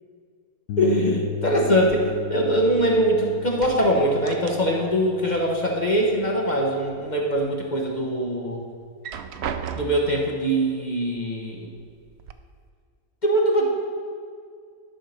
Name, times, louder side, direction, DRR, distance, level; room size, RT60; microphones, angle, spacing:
sound 1, 0.7-8.4, left 7 dB, 70° left, 1.0 m, -36 dB
voice 1, 0.8-8.6 9.8-11.7 13.2-13.7, right 1 dB, 35° left, -1 dB, 1.0 m, -22 dB
sound 2, 1.8-3.1 3.4-5.0 5.3-6.3 6.7-7.5 8.0-8.1 8.8-10.2 11.2-11.3 11.7-12.3, right 7 dB, 65° right, 0.6 m, -36 dB
11.0 x 4.5 x 6.5 m, 2.1 s
omnidirectional pair, 1.5 m